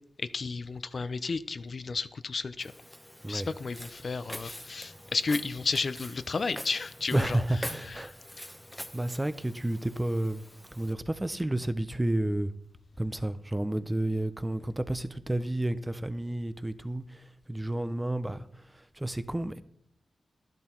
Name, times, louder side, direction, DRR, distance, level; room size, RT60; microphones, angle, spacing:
voice 1, 0.2-2.7 3.3-7.4 7.7-8.1, left 4 dB, 60° left, 0.7 m, -33 dB
Walk footsteps, 2.6-10.9, equal, 5° left, 1.3 m, -45 dB
voice 2, 7.1-8.1 8.4-8.6 8.9-10.4 10.7-12.5 13.0-19.6, right 1 dB, 15° right, 1.0 m, -31 dB
12.5 x 11.0 x 4.6 m
cardioid pair, 50°, 0 cm